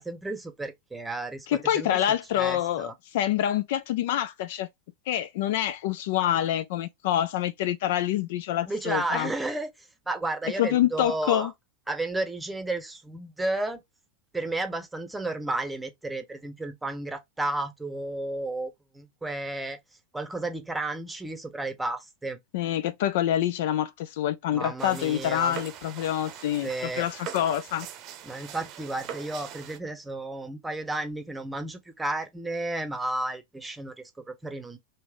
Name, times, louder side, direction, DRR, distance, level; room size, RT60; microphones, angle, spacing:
voice 1, 0.0-2.0 2.4-2.9 8.7-9.7 10.1-11.5 11.9-13.8 14.3-19.8 20.1-22.4 24.5-25.6 26.6-27.1 28.2-34.8, right 2 dB, 5° right, 0.8 m, -32 dB
voice 2, 1.5-4.7 5.1-9.3 10.6-11.5 22.5-27.9, left 12 dB, 50° left, 0.3 m, -26 dB
sound 1, 24.8-29.8, right 9 dB, 35° right, 0.7 m, -42 dB
3.2 x 2.9 x 3.6 m
figure-of-eight pair, 90°, 0 cm